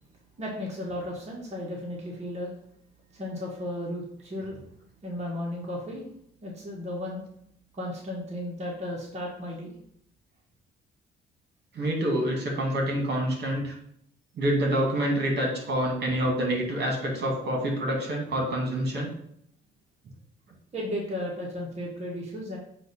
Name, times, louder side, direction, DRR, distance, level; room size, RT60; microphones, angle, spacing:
voice 1, 0.4-2.5 3.1-4.6 5.0-6.1 6.4-7.2 7.7-9.8 20.7-22.6, left 1 dB, 35° right, -3 dB, 1.6 m, -34 dB
voice 2, 11.7-13.7 14.4-19.1, right 1 dB, 60° right, 0 dB, 2.1 m, -27 dB
7.5 x 2.7 x 5.5 m, 0.70 s
cardioid pair, 90°, 20 cm